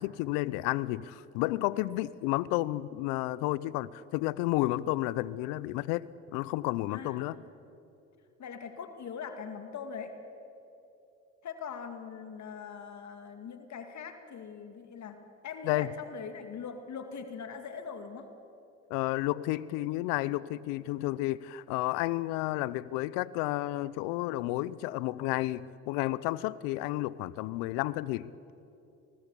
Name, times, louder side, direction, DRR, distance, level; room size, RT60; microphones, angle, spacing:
voice 1, 0.0-7.3 15.6-15.9 18.9-28.3, left 17 dB, 80° left, 20 dB, 0.7 m, -31 dB
voice 2, 6.9-7.4 8.4-10.2 11.4-18.3, left 6 dB, 55° left, 7 dB, 2.4 m, -42 dB
26.5 x 21.0 x 8.4 m, 2.8 s
hypercardioid pair, 55°, 33 cm